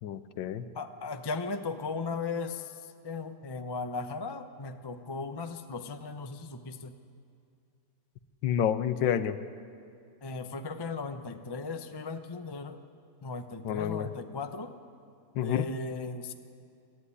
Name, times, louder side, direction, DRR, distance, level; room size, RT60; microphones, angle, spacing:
voice 1, 0.0-0.6 8.4-9.4 13.6-14.1 15.3-15.7, left 9 dB, 75° left, 12 dB, 1.5 m, -29 dB
voice 2, 0.7-6.9 10.2-12.8 13.2-14.7 15.4-16.3, left 4 dB, 30° left, 8 dB, 0.5 m, -37 dB
23.0 x 14.0 x 9.8 m, 2.5 s
omnidirectional pair, 2.1 m